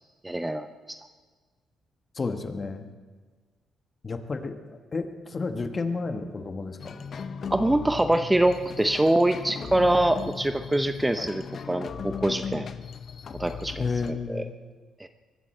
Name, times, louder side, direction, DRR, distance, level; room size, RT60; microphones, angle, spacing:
voice 1, 0.2-1.0 7.5-12.7 13.4-13.9 14.3-14.4 15.0-15.1, right 1 dB, 10° right, 9 dB, 0.6 m, -24 dB
voice 2, 2.1-2.9 4.0-7.0 11.2-11.3 13.8-14.5, left 4 dB, 35° left, 7 dB, 1.3 m, -31 dB
sound 1, 6.8-14.1, left 6 dB, 50° left, 0.7 m, -37 dB
23.0 x 13.0 x 4.4 m, 1.4 s
cardioid pair, 90°, 0 cm